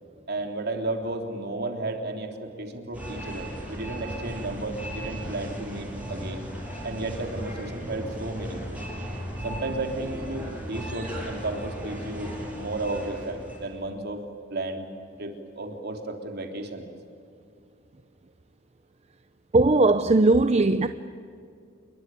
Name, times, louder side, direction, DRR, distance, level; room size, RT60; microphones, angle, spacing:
voice 1, 0.3-6.4 6.8-8.8 9.4-14.2 14.5-14.9 15.2-16.9, right 2 dB, 55° right, 3.6 m, -33 dB
sound 1, 2.9-13.7, equal, 5° right, 6.8 m, -36 dB
voice 2, 19.5-20.9, right 2 dB, 35° right, 0.7 m, -19 dB
28.0 x 22.0 x 9.3 m
head